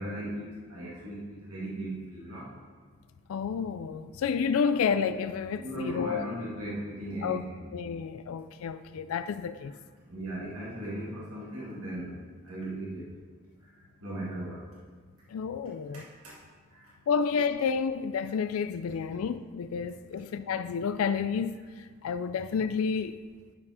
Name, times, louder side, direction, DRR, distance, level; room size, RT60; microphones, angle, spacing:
voice 1, 0.0-2.5 5.5-7.6 10.1-12.2 12.4-13.1 14.0-14.6 15.9-16.4 16.7-16.9, right 1 dB, 90° right, 2.1 m, -37 dB
voice 2, 3.3-6.3 7.2-7.4 7.7-9.7 15.3-16.1 17.1-23.2, left 6 dB, 80° left, 0.3 m, -30 dB
9.5 x 4.8 x 4.9 m
head